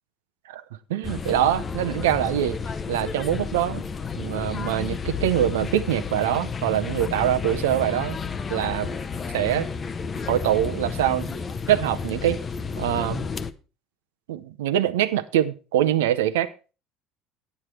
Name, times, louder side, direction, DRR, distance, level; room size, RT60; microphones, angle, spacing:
voice 1, 0.9-2.6 2.9-3.8 4.2-8.2 8.5-9.0 9.3-9.7 10.3-11.4 11.7-12.4 12.8-13.3 14.3-16.5, right 11 dB, 75° right, 12 dB, 0.7 m, -24 dB
sound 1, 1.0-13.5, left 5 dB, 30° left, 0.7 m, -31 dB
9.7 x 9.2 x 4.4 m, 0.33 s
hypercardioid pair, 65°, 0 cm